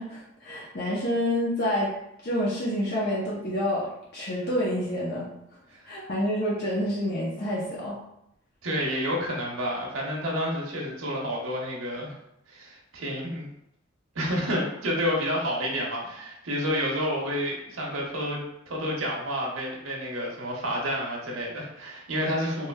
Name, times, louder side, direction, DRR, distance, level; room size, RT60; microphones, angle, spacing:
voice 1, 0.0-1.9 2.2-3.9 4.1-5.3 5.9-8.0, equal, 55° left, -5 dB, 0.6 m, -28 dB
voice 2, 8.6-12.1 12.5-13.5 14.1-22.7, equal, 90° right, -2 dB, 0.8 m, -29 dB
3.1 x 3.0 x 2.2 m, 0.81 s
head